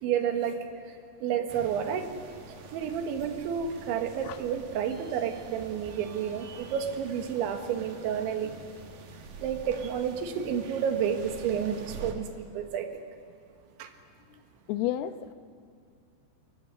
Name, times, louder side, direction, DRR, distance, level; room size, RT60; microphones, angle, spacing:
voice 1, 0.0-0.6 1.2-2.1 2.7-8.5 9.4-12.9 13.8-13.9, right 8 dB, 85° right, 7 dB, 3.9 m, -30 dB
sound 1, 1.5-12.1, right 4 dB, 55° right, 3.2 m, -46 dB
voice 2, 14.7-15.3, left 12 dB, 75° left, 11 dB, 2.4 m, -31 dB
23.5 x 22.0 x 9.6 m, 2.3 s
omnidirectional pair, 5.3 m